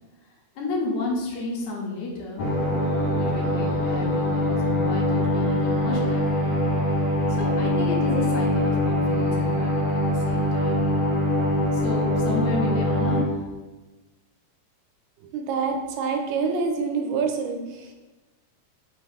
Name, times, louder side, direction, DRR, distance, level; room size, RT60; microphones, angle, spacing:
voice 1, 0.6-2.5 3.1-6.6 7.3-10.9 11.7-13.3, left 3 dB, 80° left, -2 dB, 2.1 m, -32 dB
sound 1, 2.4-13.2, left 1 dB, 45° left, 1.6 m, -23 dB
voice 2, 15.3-17.9, right 5 dB, 90° right, 4 dB, 2.0 m, -26 dB
5.1 x 2.4 x 3.3 m, 1.2 s
omnidirectional pair, 3.4 m